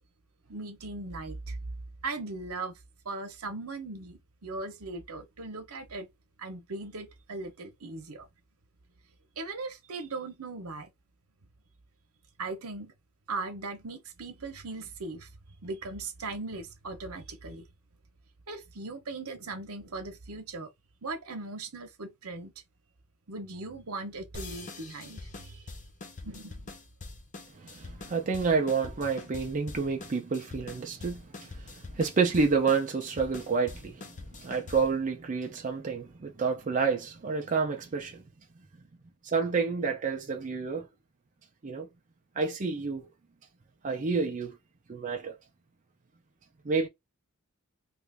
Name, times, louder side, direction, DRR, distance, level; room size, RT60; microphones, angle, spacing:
voice 1, 0.5-1.6 2.0-2.8 3.0-6.1 6.4-8.3 9.4-10.9 12.4-12.9 13.3-15.3 15.6-17.7 18.5-20.7 21.0-22.5 23.3-25.7 26.2-26.7, right 3 dB, 75° right, 0.9 m, -39 dB
sound 1, 24.3-35.0, left 3 dB, 35° left, 0.6 m, -45 dB
voice 2, 27.6-34.1 34.4-38.2 39.2-40.9 41.6-41.9 42.4-43.0 43.8-44.6 44.9-45.4 46.6-46.9, right 5 dB, 35° right, 0.5 m, -29 dB
3.1 x 2.5 x 3.3 m
head